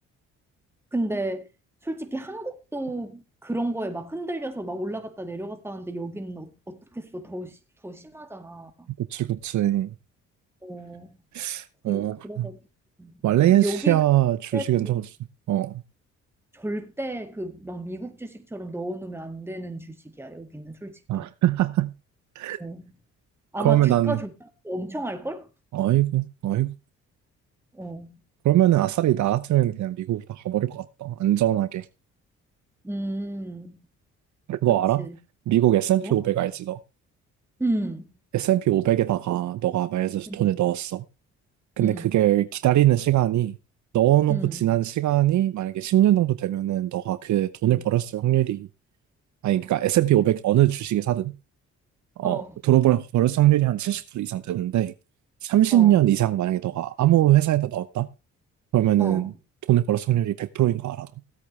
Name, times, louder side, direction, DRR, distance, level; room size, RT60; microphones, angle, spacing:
voice 1, 0.9-1.5 1.8-7.6 7.8-8.9 10.6-11.1 11.9-12.6 13.0-14.0 14.5-15.0 16.5-21.0 22.6-22.8 23.5-24.3 24.6-25.5 27.7-28.2 32.8-33.7 35.0-35.2 36.0-36.2 37.6-38.1 40.3-40.5 41.8-42.1 44.3-44.6 47.6-47.8 52.2-52.6 55.7-56.0 59.0-59.3, right 1 dB, 10° right, 2.0 m, -33 dB
voice 2, 9.0-9.9 11.3-12.5 13.2-15.1 15.5-15.8 21.1-21.9 22.4-22.6 23.6-24.2 25.7-26.7 28.4-31.8 34.5-35.1 35.5-36.8 38.3-41.0 41.8-43.6 43.9-48.7 49.4-51.4 52.2-54.9 55.4-58.1 58.7-59.3 59.7-61.1, right 13 dB, 70° right, 0.8 m, -22 dB
16.5 x 8.4 x 3.2 m
cardioid pair, 90°, 30 cm